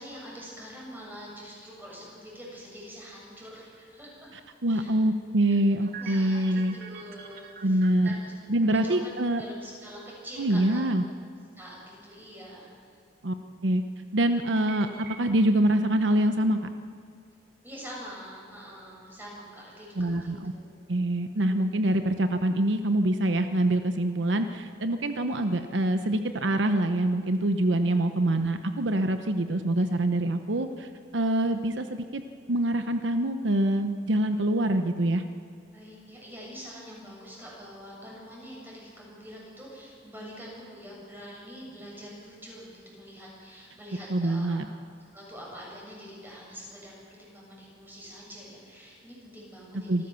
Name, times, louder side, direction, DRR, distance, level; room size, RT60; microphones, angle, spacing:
voice 1, 0.0-4.3 4.7-4.9 5.9-8.3 8.6-10.8 11.6-12.8 17.6-20.7 28.1-28.2 35.7-44.6 45.1-50.1, equal, 10° right, -4 dB, 7.2 m, -45 dB
voice 2, 4.6-6.8 7.6-8.1 8.5-9.4 10.4-11.0 13.2-13.3 13.6-13.8 14.1-14.9 15.2-16.6 20.0-20.5 20.9-32.2 32.5-35.2 44.1-44.7 49.9-50.1, right 1 dB, 75° right, 8 dB, 0.9 m, -25 dB
sound 1, 5.8-8.5 10.4-10.5 10.8-11.2 14.4-15.6 16.0-16.1 16.7-17.1, right 7 dB, 55° right, 2.1 m, -45 dB
26.0 x 14.0 x 7.0 m, 2.2 s
head